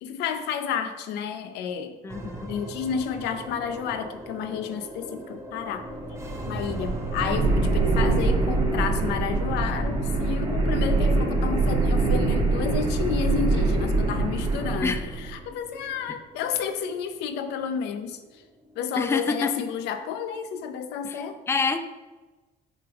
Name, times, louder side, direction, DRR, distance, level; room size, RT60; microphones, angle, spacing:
voice 1, 0.0-2.0 2.5-5.9 6.4-18.4 18.8-21.4, left 7 dB, 85° left, 8 dB, 0.6 m, -31 dB
voice 2, 2.0-2.5 14.8-15.0 19.0-19.5 21.0-21.2 21.5-21.8, left 4 dB, 15° left, 9 dB, 0.4 m, -26 dB
sound 1, 2.1-20.6, right 1 dB, 15° right, 0.9 m, -41 dB
sound 2, 5.8-15.3, right 3 dB, 35° right, 1.7 m, -24 dB
7.2 x 4.6 x 3.5 m, 1.2 s
cardioid pair, 110°, 17 cm